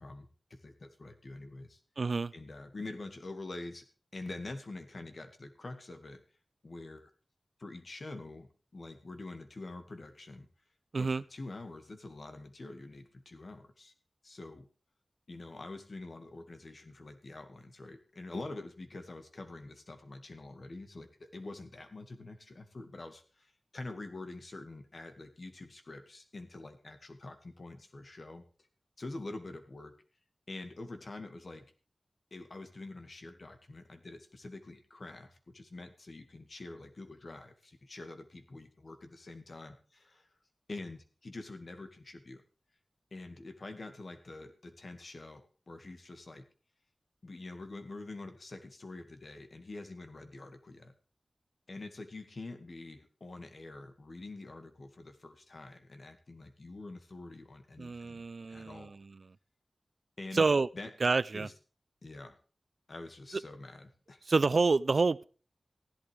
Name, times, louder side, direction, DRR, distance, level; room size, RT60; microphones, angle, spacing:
voice 1, 0.0-1.8 2.3-3.9 4.1-6.2 6.6-7.1 7.6-10.5 11.0-13.9 14.2-14.7 15.3-28.4 29.0-29.9 30.5-31.7 32.3-40.3 40.7-42.4 43.1-46.4 47.2-50.9 51.7-58.2 58.5-59.0 60.2-60.9 61.3-61.5 62.0-62.4 62.9-64.2, left 2 dB, 60° left, 2.1 m, -46 dB
voice 2, 2.0-2.3 10.9-11.2 57.8-59.1 60.3-60.7 61.0-61.5 64.3-65.3, right 4 dB, 70° right, 0.5 m, -28 dB
15.5 x 11.5 x 3.5 m
wide cardioid pair, 60°, 0 cm